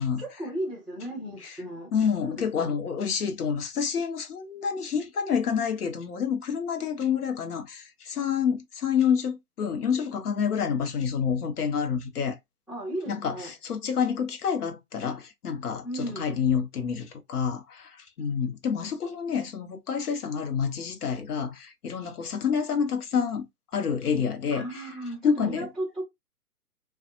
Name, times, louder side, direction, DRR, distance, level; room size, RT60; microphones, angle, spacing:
voice 1, 0.2-1.9 2.2-2.7 12.7-13.5 15.8-16.4 24.5-26.0, right 1 dB, ahead, 0.9 m, -35 dB
voice 2, 1.9-12.4 13.1-23.4 23.7-24.9 25.2-25.7, left 7 dB, 70° left, 1.0 m, -28 dB
2.6 x 2.4 x 2.5 m
hypercardioid pair, 130°, 47 cm